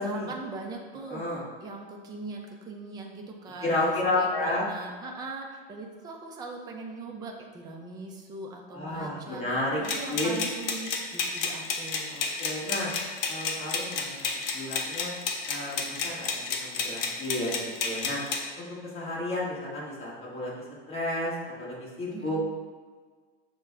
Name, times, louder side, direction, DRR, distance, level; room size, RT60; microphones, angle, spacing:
voice 1, 0.0-1.2 1.6-9.4 9.8-12.2 22.1-22.4, right 3 dB, 15° right, 1 dB, 0.4 m, -40 dB
voice 2, 1.1-1.4 3.6-4.7 8.7-9.8 10.1-10.3 12.1-12.9 13.3-14.3 14.5-15.1 15.5-18.2 18.6-18.7 18.9-20.5 20.9-22.4, left 2 dB, 20° left, -6 dB, 1.3 m, -31 dB
sound 1, 9.8-18.4, left 4 dB, 65° left, 0.8 m, -31 dB
6.4 x 2.2 x 3.4 m, 1.5 s
supercardioid pair, 140°, 29 cm